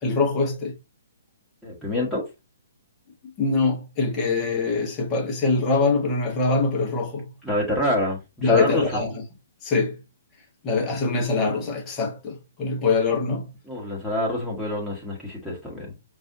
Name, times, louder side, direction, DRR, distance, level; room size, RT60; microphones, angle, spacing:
voice 1, 0.0-0.8 3.4-7.3 8.4-9.2 9.6-10.0 10.6-13.5, left 3 dB, 20° left, 1.2 m, -23 dB
voice 2, 1.6-2.2 7.4-8.8 13.7-15.9, left 1 dB, ahead, 1.4 m, -27 dB
5.4 x 2.6 x 2.7 m
figure-of-eight pair, 125°, 0 cm